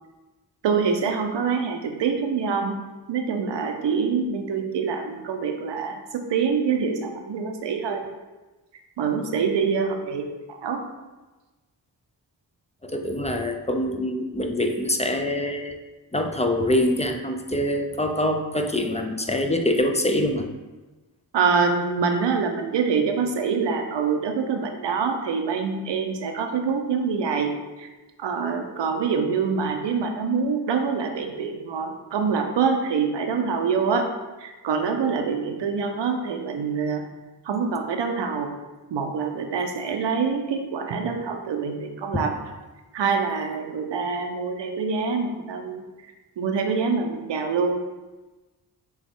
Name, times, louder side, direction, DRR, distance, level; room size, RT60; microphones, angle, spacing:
voice 1, 0.6-2.8 3.1-8.1 9.0-10.8 21.3-27.9 28.2-34.1 34.4-37.0 37.4-38.5 38.9-42.3 42.9-45.8 46.4-47.8, right 5 dB, 80° right, 5 dB, 0.6 m, -25 dB
voice 2, 12.8-15.8 16.1-20.5 42.1-42.2, left 1 dB, 15° left, 4 dB, 0.5 m, -24 dB
6.1 x 2.4 x 3.6 m, 1.2 s
cardioid pair, 60°, 42 cm